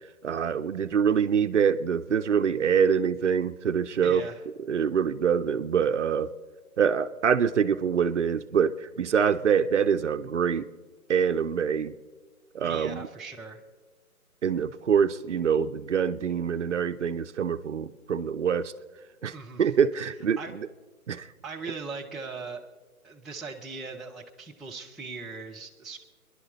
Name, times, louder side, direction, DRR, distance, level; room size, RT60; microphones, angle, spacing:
voice 1, 0.2-4.2 4.7-6.3 6.8-10.7 11.1-11.9 12.5-13.1 14.4-18.7 19.2-20.7 21.1-21.3, right 7 dB, 55° right, 11 dB, 0.7 m, -25 dB
voice 2, 4.0-4.4 12.6-13.6 19.3-19.7 20.4-20.5 21.4-22.6 23.0-26.0, right 4 dB, ahead, -4 dB, 0.4 m, -39 dB
25.0 x 11.0 x 4.0 m, 1.3 s
hypercardioid pair, 165°, 44 cm